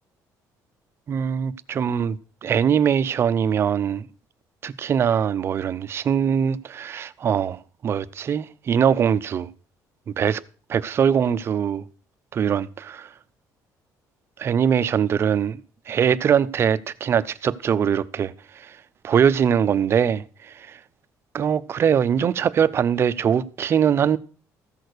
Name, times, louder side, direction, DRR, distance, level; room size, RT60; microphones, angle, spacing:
voice 1, 1.1-2.2 2.4-4.1 4.6-9.5 10.2-10.4 10.7-11.8 12.3-13.1 14.4-15.6 15.9-18.3 19.0-20.2 21.3-24.2, right 8 dB, 40° right, 0.6 m, -22 dB
14.5 x 6.4 x 6.6 m
cardioid pair, 150°, 7 cm